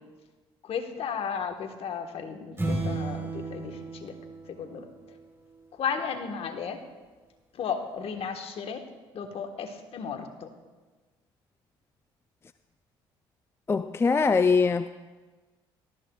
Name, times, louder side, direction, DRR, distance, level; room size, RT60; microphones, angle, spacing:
voice 1, 0.6-4.2 4.5-4.9 5.7-6.8 7.5-8.8 9.1-10.5, left 6 dB, 55° left, 5 dB, 1.4 m, -34 dB
sound 1, 2.6-5.2, right 2 dB, 20° right, 3.7 m, -33 dB
voice 2, 13.7-14.9, left 4 dB, 20° left, 12 dB, 0.3 m, -22 dB
18.0 x 13.0 x 2.4 m, 1.3 s
hypercardioid pair, 60°, 12 cm